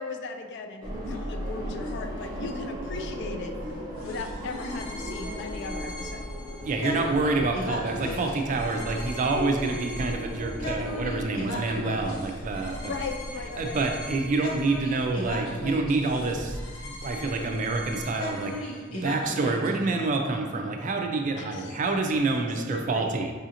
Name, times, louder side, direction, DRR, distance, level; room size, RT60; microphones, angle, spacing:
voice 1, 0.0-3.5 4.0-6.3 12.8-13.8 21.4-21.8 22.3-23.1, left 4 dB, 55° left, 5 dB, 0.3 m, -38 dB
sound 1, 0.8-16.6, equal, 20° right, 0.8 m, -37 dB
sound 2, 4.0-19.7, left 1 dB, 85° left, 0.7 m, -38 dB
voice 2, 6.6-13.0 13.6-18.5 18.9-23.3, right 3 dB, 40° right, 3 dB, 0.4 m, -27 dB
4.9 x 2.5 x 2.8 m, 1.5 s
head